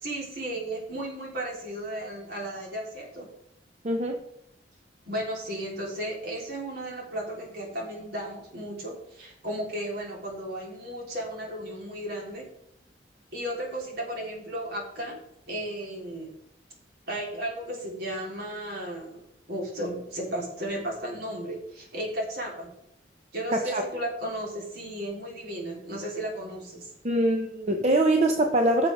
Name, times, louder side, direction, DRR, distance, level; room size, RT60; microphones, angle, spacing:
voice 1, 0.0-3.3 5.0-12.5 13.3-15.2 15.5-16.3 17.1-22.7 23.3-26.9, right 1 dB, 65° right, -3 dB, 3.9 m, -34 dB
voice 2, 23.5-23.9 27.0-28.9, right 1 dB, 40° right, 3 dB, 0.9 m, -23 dB
15.5 x 6.8 x 3.6 m, 0.75 s
head